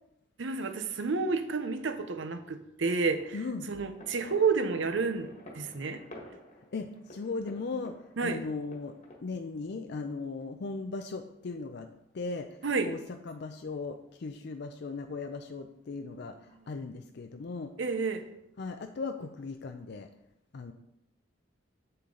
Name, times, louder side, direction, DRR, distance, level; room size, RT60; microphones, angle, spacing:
voice 1, 0.4-3.4 3.7-6.0 8.2-8.4 12.6-12.9 17.8-18.2, right 4 dB, 70° right, 8 dB, 0.7 m, -30 dB
sound 1, 3.1-9.2, left 1 dB, 40° left, 1.4 m, -52 dB
voice 2, 3.3-3.7 6.7-11.9 12.1-12.6 12.8-17.7 18.6-20.1 20.5-20.7, left 3 dB, 55° left, 6 dB, 0.4 m, -38 dB
7.9 x 6.8 x 3.8 m, 0.84 s
head